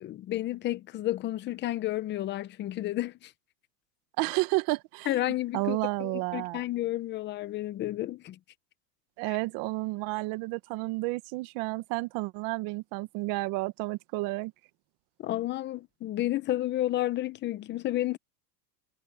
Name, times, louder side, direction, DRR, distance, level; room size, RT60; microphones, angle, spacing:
voice 1, 0.0-3.3 5.1-8.4 9.3-9.4 15.2-18.2, left 14 dB, 20° left, 0.8 m, -31 dB
voice 2, 4.2-5.1 5.5-6.6 9.2-14.5, right 22 dB, 40° right, 1.5 m, -31 dB
supercardioid pair, 140°, 50 cm